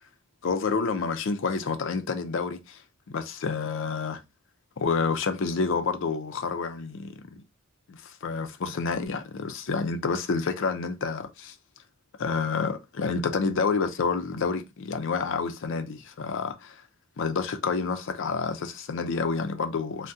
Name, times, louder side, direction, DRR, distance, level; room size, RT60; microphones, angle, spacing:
voice 1, 0.4-2.8 3.1-4.2 4.8-7.4 7.9-11.5 12.2-16.8 17.2-20.1, left 4 dB, 65° left, 0.5 m, -29 dB
2.6 x 2.1 x 3.5 m
head